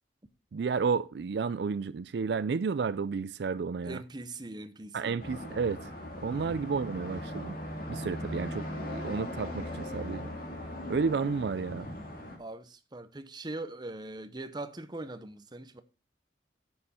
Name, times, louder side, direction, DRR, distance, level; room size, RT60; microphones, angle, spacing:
voice 1, 0.5-4.0 4.9-5.9 6.2-7.6 7.9-10.3 10.9-11.9, right 5 dB, 65° right, 0.4 m, -31 dB
voice 2, 3.8-5.2 6.3-6.6 12.4-15.8, right 2 dB, 25° right, 0.8 m, -41 dB
sound 1, 5.2-12.4, left 1 dB, 50° left, 2.6 m, -39 dB
9.7 x 7.7 x 4.3 m
head